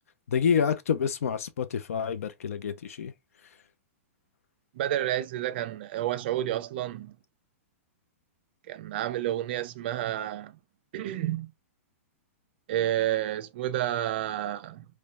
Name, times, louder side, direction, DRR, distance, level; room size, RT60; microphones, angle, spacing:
voice 1, 0.3-3.1, left 7 dB, 85° left, 0.7 m, -28 dB
voice 2, 4.7-7.2 8.7-10.6 10.9-11.5 12.7-14.9, right 12 dB, 45° right, 0.5 m, -30 dB
3.3 x 3.2 x 2.3 m
hypercardioid pair, 165°, 8 cm